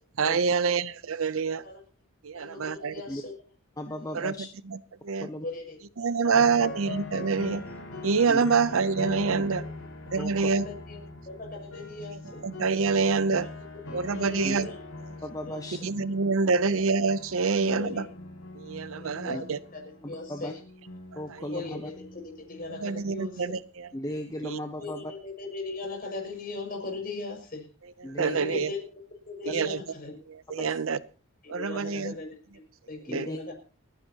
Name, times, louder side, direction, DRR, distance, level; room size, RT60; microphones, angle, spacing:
voice 1, 0.2-1.6 2.2-2.9 4.1-4.3 4.7-4.8 5.0-5.3 6.0-7.6 8.0-9.6 10.1-10.6 12.4-13.5 13.9-14.7 15.8-18.1 18.5-19.6 22.7-23.9 24.4-24.6 28.2-28.7 29.5-29.8 30.3-31.0 31.5-32.1 33.1-33.3, right 5 dB, 75° right, 17 dB, 0.7 m, -26 dB
voice 2, 2.3-3.4 4.2-4.3 5.4-5.8 6.2-6.7 9.5-9.7 10.1-12.4 13.3-13.5 13.9-14.8 15.5-15.6 16.3-16.8 17.7-18.2 18.9-20.6 21.5-23.6 24.8-27.6 28.3-30.2 30.6-30.7 31.4-33.5, left 3 dB, 45° left, 2 dB, 6.1 m, -39 dB
voice 3, 3.8-4.5 5.2-5.4 8.3-8.4 10.2-10.5 14.4-14.6 15.2-15.8 19.3-19.4 20.0-20.5 21.2-21.9 23.9-25.1 28.0-28.6 29.5-29.7 30.6-30.7 33.1-33.4, left 1 dB, 15° left, 5 dB, 0.9 m, -36 dB
sound 1, 6.3-23.3, left 2 dB, 80° left, 5.0 m, -42 dB
30.0 x 10.0 x 2.9 m, 0.35 s
head